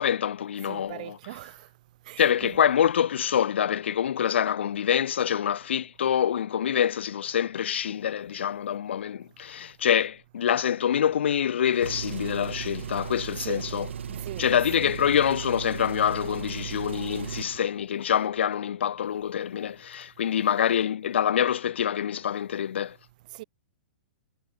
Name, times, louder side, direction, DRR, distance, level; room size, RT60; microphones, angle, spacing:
voice 1, 0.0-1.2 2.2-13.9 14.4-23.0, left 9 dB, 75° left, 1.1 m, -26 dB
voice 2, 0.7-1.7 2.1-2.6 13.4-13.7 14.1-14.6 23.3-23.4, right 17 dB, 40° right, 3.7 m, -40 dB
Engine, 11.7-17.6, right 8 dB, 90° right, 1.3 m, -36 dB
hypercardioid pair, 165°, 6 cm